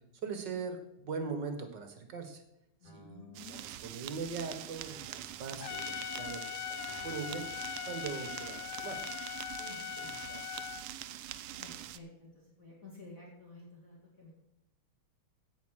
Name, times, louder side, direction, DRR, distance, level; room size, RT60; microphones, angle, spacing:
voice 1, 0.2-2.4 2.8-7.5 7.9-9.0 9.6-10.7, right 5 dB, 55° right, 6 dB, 2.0 m, -41 dB
voice 2, 2.8-3.6 9.7-10.1 11.6-14.3, left 2 dB, 40° left, -4 dB, 3.0 m, -52 dB
Guitar, 2.8-4.3 4.8-8.7, right 2 dB, 20° right, 5.9 m, -59 dB
sound 1, 3.3-12.0, right 12 dB, 85° right, 1.5 m, -44 dB
Trumpet, 5.6-10.9, left 12 dB, 80° left, 0.9 m, -41 dB
16.5 x 5.5 x 6.4 m, 0.80 s
omnidirectional pair, 2.4 m